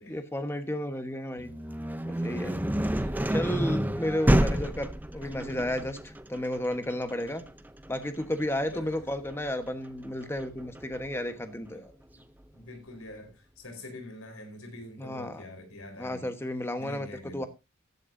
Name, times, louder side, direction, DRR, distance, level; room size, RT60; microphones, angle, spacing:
voice 1, 0.1-1.5 2.1-2.6 3.0-7.4 7.9-11.9 15.0-15.4 16.0-17.1 17.3-17.5, left 1 dB, 10° left, 1.2 m, -33 dB
sound 1, 1.4-11.2, right 1 dB, 10° right, 0.6 m, -30 dB
voice 2, 8.3-8.9 11.7-11.8 12.5-16.3 16.8-17.5, left 1 dB, 85° left, 4.4 m, -45 dB
15.0 x 11.0 x 2.7 m
head